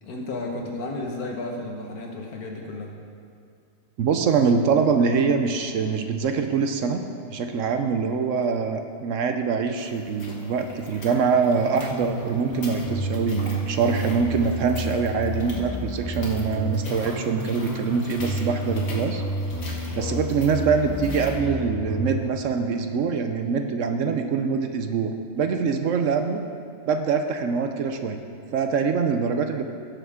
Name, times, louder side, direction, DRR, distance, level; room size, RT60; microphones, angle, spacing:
voice 1, 0.0-2.9 19.9-20.1, left 2 dB, 80° left, 0 dB, 1.8 m, -33 dB
voice 2, 4.0-19.2 19.9-26.4 26.9-28.2 28.5-29.6, right 5 dB, 65° right, 6 dB, 0.9 m, -24 dB
sound 1, 9.7-21.3, left 2 dB, 65° left, 2.0 m, -43 dB
sound 2, 11.5-22.2, equal, 15° left, 1.1 m, -31 dB
16.5 x 6.8 x 3.6 m, 2.3 s
omnidirectional pair, 1.6 m